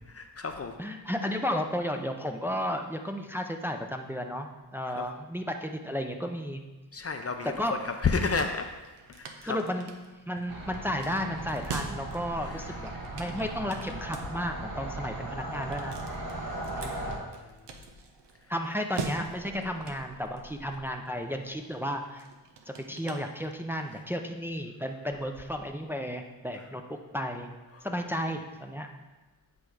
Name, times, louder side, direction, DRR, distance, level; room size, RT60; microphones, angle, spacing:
voice 1, 0.1-0.8 4.9-5.1 6.9-8.7 9.1-9.6 12.4-13.3 13.6-14.2 16.4-16.7 16.9-17.0 23.9-24.0 26.6-26.7 27.7-27.9, left 4 dB, 35° left, 6 dB, 0.6 m, -33 dB
voice 2, 0.8-6.6 7.6-7.7 9.4-9.9 10.3-16.0 16.8-17.2 18.5-22.3 22.9-27.5 27.8-28.9, equal, 5° right, 4 dB, 0.6 m, -33 dB
sound 1, 7.8-23.9, right 4 dB, 80° right, 0.8 m, -44 dB
sound 2, 10.5-17.2, right 2 dB, 60° right, 1.4 m, -38 dB
8.5 x 3.3 x 4.8 m, 1.2 s
cardioid pair, 50°, 41 cm